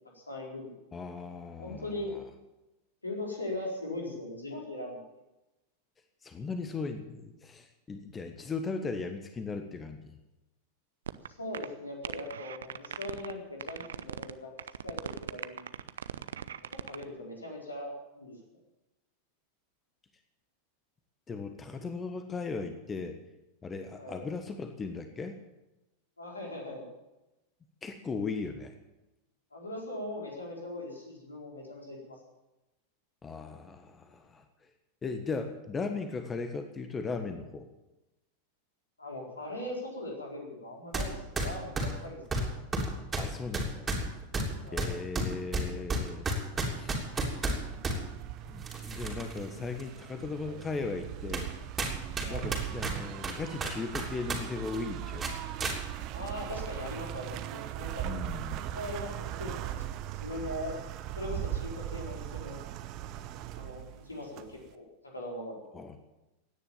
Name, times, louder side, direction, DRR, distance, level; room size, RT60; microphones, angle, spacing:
voice 1, 0.1-0.8 1.6-2.2 3.0-5.0 11.4-14.5 14.8-15.8 16.9-18.4 24.0-24.2 26.2-26.9 29.5-32.2 39.0-42.2 44.6-44.9 50.4-50.6 52.2-52.5 56.1-58.1 58.7-60.7 61.1-62.6 63.5-65.6, left 1 dB, 80° left, -1 dB, 4.4 m, -40 dB
voice 2, 0.9-2.2 6.2-10.2 21.3-23.2 23.6-25.4 27.8-28.7 33.2-34.4 35.0-37.7 43.2-43.9 44.7-46.3 46.7-47.0 48.5-51.5 52.2-55.3 58.0-58.7 65.7-66.0, left 4 dB, 20° left, 7 dB, 1.4 m, -37 dB
sound 1, 11.1-11.3 11.5-11.7 12.0-13.3 13.6-14.3 14.6-17.0, right 9 dB, 65° right, 0.6 m, -38 dB
sound 2, 40.9-41.1 41.4-48.0 48.6-49.4 49.8-49.9 50.6-50.7 51.3-51.5 51.8-54.4 54.7-54.8 55.2-55.8, right 2 dB, 15° right, 3.2 m, -32 dB
sound 3, 46.5-64.7, right 12 dB, 40° right, 0.9 m, -39 dB
17.0 x 10.0 x 7.3 m, 0.98 s
figure-of-eight pair, 90°, 0 cm